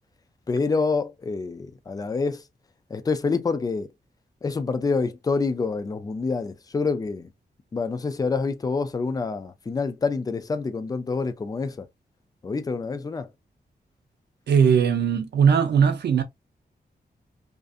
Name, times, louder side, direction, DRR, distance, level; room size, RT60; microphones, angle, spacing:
voice 1, 0.5-2.4 2.9-3.9 4.4-7.3 7.7-11.9 12.4-13.3, left 4 dB, 20° left, 0.3 m, -27 dB
voice 2, 14.5-16.2, right 7 dB, 80° right, 0.6 m, -19 dB
2.5 x 2.5 x 2.4 m
wide cardioid pair, 165°, 17 cm